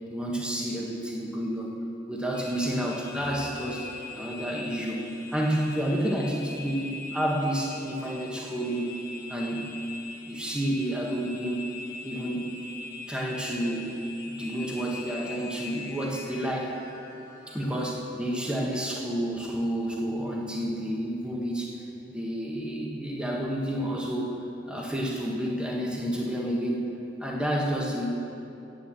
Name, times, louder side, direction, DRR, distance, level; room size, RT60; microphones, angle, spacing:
voice 1, 0.1-1.7 2.1-5.0 5.3-9.0 9.3-9.7 10.3-11.7 12.0-12.6 13.1-14.0 14.3-16.8 17.5-21.8 22.1-24.4 24.7-26.8 27.2-28.1, equal, 5° right, -3 dB, 1.3 m, -30 dB
sound 1, 2.3-17.9, left 3 dB, 15° left, 1.5 m, -43 dB
9.2 x 9.1 x 7.6 m, 2.9 s
head